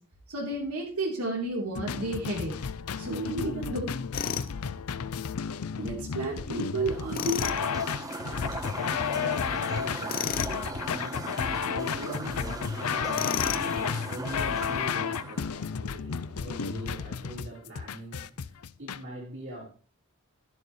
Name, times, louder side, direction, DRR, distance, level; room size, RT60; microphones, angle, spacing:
voice 1, 0.3-2.5 3.0-3.9 5.8-7.5, right 2 dB, 85° right, 3.5 m, -31 dB
sound 1, 1.8-19.0, left 6 dB, 80° left, 0.5 m, -32 dB
Tools, 4.1-4.5 7.1-7.6 10.1-10.6 13.1-13.7, left 7 dB, 40° left, 0.6 m, -31 dB
sound 2, 6.8-15.5, right 2 dB, 15° right, 1.2 m, -38 dB
voice 2, 8.1-19.7, right 1 dB, 60° right, 4.8 m, -43 dB
12.5 x 10.5 x 3.2 m
head